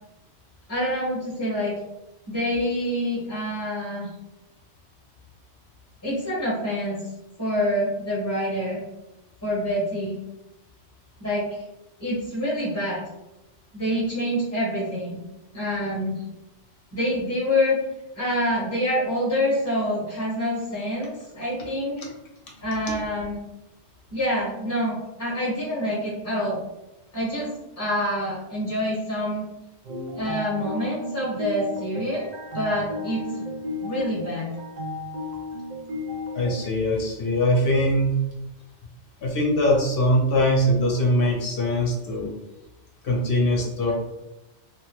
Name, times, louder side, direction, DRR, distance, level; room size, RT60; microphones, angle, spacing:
voice 1, 0.7-1.7 2.3-4.1 6.0-7.0 7.4-8.8 9.4-10.2 11.2-11.6 12.0-13.0 13.7-15.2 15.5-16.2 16.9-17.8 18.1-22.0 22.6-23.4 24.1-26.6 27.1-27.5 27.8-29.4 30.1-32.3 32.5-33.2 33.8-34.5, equal, 15° left, -8 dB, 0.9 m, -26 dB
sound 1, 29.8-36.7, left 2 dB, 60° right, 0.5 m, -34 dB
voice 2, 36.3-38.1 39.2-42.3 43.0-43.9, left 1 dB, 55° left, -1 dB, 0.9 m, -22 dB
2.8 x 2.1 x 2.9 m, 0.95 s
omnidirectional pair, 1.2 m